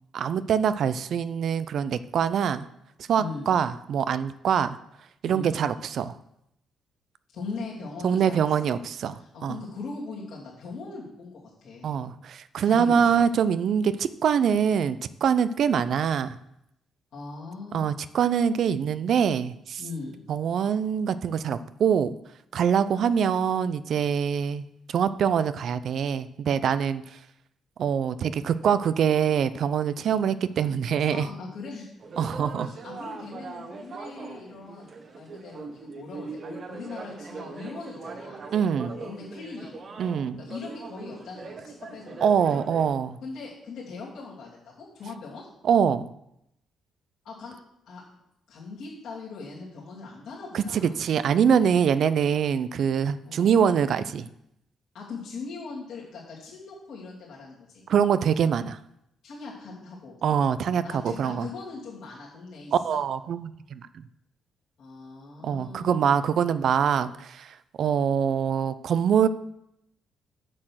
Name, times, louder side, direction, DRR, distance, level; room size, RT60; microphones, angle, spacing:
voice 1, 0.1-2.7 3.1-4.8 5.2-6.1 8.0-9.6 11.8-16.4 17.7-19.8 20.3-22.1 22.5-24.6 24.9-27.0 27.8-31.3 32.2-32.7 38.5-39.0 40.0-40.4 42.2-43.2 45.6-46.1 50.5-54.3 57.9-58.8 60.2-61.5 62.7-63.8 65.4-67.5 67.8-69.3, right 7 dB, 65° right, 14 dB, 0.5 m, -24 dB
voice 2, 3.2-3.5 5.2-5.5 7.3-8.7 9.1-11.3 11.6-11.9 12.6-13.2 17.1-18.0 19.8-20.2 31.1-31.9 32.6-38.4 39.0-39.7 40.4-42.3 43.2-45.5 47.2-47.6 47.9-48.0 48.5-51.0 53.2-53.6 54.9-57.8 59.2-60.2 60.6-63.0 64.8-65.9, left 4 dB, 70° left, -8 dB, 3.0 m, -40 dB
sound 1, 32.0-42.9, right 4 dB, 45° right, 1.2 m, -40 dB
7.4 x 6.7 x 6.2 m, 0.80 s
cardioid pair, 90°, 0 cm